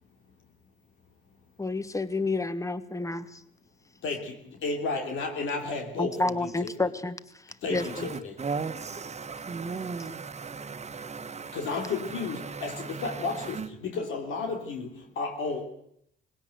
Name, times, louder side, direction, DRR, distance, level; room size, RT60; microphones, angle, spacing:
voice 1, 1.6-3.4 6.0-8.1, left 3 dB, 15° left, 1.5 m, -30 dB
voice 2, 4.0-6.7 7.6-8.4 11.5-15.7, left 4 dB, 80° left, 2.9 m, -33 dB
voice 3, 7.8-13.3 13.5-13.7, right 5 dB, 35° right, 1.4 m, -37 dB
20.0 x 17.0 x 7.9 m
cardioid pair, 90°, 20 cm